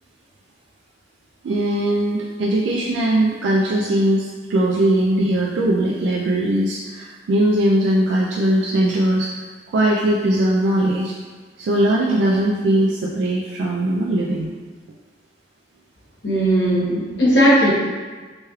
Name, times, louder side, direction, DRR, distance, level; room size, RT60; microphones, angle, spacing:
voice 1, 1.4-9.3 9.7-11.1 11.6-14.5, right 1 dB, 85° right, -3 dB, 0.3 m, -20 dB
voice 2, 16.2-17.7, equal, 80° left, -8 dB, 1.1 m, -17 dB
3.1 x 3.0 x 2.3 m, 1.4 s
head